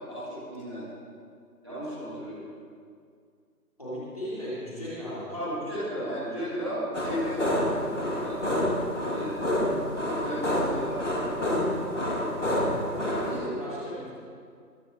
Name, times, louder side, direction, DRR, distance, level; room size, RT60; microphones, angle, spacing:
voice 1, 0.1-0.8 1.6-2.4 5.3-8.4 9.1-9.6 10.0-11.0 13.0-13.4, equal, 15° right, -14 dB, 3.1 m, -34 dB
voice 2, 3.8-5.4 12.3-12.7 13.3-14.1, equal, 20° left, -11 dB, 3.9 m, -36 dB
sound 1, 6.9-13.4, left 1 dB, 45° left, 2.4 m, -28 dB
22.5 x 15.0 x 3.0 m, 2.2 s
figure-of-eight pair, 180°, 49 cm